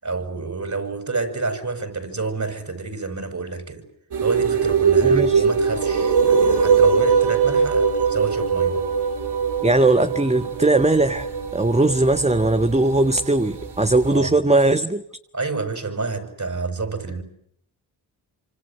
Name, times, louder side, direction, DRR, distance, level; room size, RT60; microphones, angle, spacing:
voice 1, 0.0-3.8 4.2-8.9 14.1-14.4 15.3-17.2, right 3 dB, 45° right, 7.5 m, -29 dB
sound 1, 4.1-14.2, right 6 dB, 70° right, 3.8 m, -21 dB
voice 2, 5.0-5.4 9.6-15.0, right 2 dB, 15° right, 1.6 m, -19 dB
26.5 x 26.5 x 7.9 m
supercardioid pair, 50°, 41 cm